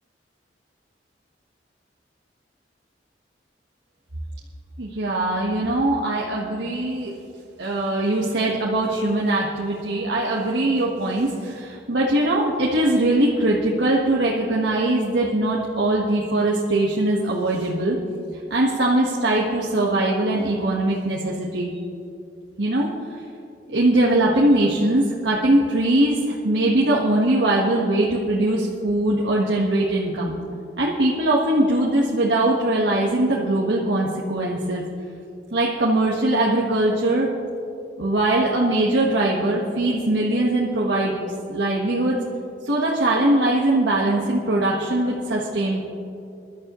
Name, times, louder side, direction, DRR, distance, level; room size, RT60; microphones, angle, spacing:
voice 1, 4.8-7.1 7.6-18.0 18.5-21.7 22.6-22.9 23.7-30.4 30.8-34.8 35.5-37.3 38.0-41.1 41.5-42.2 42.6-45.8, right 1 dB, 85° right, -4 dB, 1.4 m, -21 dB
22.5 x 12.0 x 3.1 m, 2.7 s
head